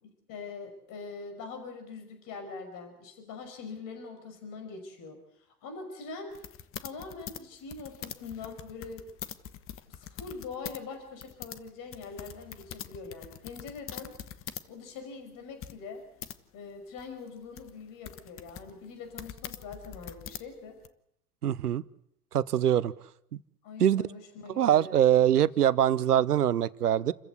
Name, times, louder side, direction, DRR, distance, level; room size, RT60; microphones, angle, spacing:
voice 1, 0.0-6.4 6.8-9.1 9.9-14.1 14.7-16.0 16.5-20.8 23.6-25.4, left 4 dB, 45° left, 6 dB, 5.7 m, -43 dB
sound 1, 6.3-10.8 11.1-14.7 15.0-15.1 15.6-16.4 17.0-20.9, left 10 dB, 30° left, 1.2 m, -43 dB
voice 2, 21.4-21.8 22.3-22.9 23.3-23.4 23.8-24.0 24.5-27.1, right 10 dB, 80° right, 19 dB, 0.9 m, -23 dB
29.0 x 15.0 x 8.2 m, 0.76 s
figure-of-eight pair, 85°, 45 cm